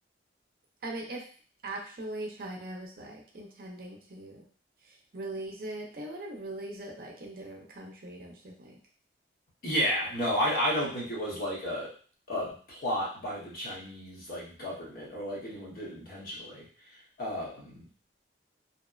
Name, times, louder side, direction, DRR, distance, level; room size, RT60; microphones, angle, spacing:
voice 1, 0.8-1.2 1.6-4.5 4.8-8.8, right 1 dB, 50° right, 0 dB, 0.5 m, -40 dB
voice 2, 9.6-11.9 12.3-16.6 17.2-17.8, equal, 50° left, -5 dB, 0.9 m, -32 dB
2.7 x 2.0 x 2.3 m, 0.42 s
head